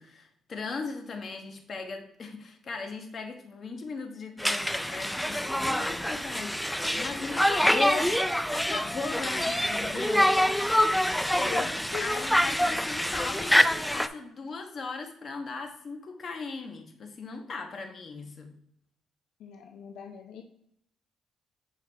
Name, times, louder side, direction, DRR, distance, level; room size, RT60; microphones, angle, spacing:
voice 1, 0.0-8.1 8.5-10.3 12.0-18.5, left 4 dB, 45° left, 4 dB, 1.2 m, -37 dB
Conversation, 4.4-14.1, equal, 5° left, 0.3 m, -26 dB
voice 2, 10.4-11.0 11.3-12.3 19.4-20.4, left 7 dB, 85° left, 3 dB, 0.6 m, -40 dB
7.2 x 4.7 x 3.4 m, 0.71 s
cardioid pair, 90°, 0 cm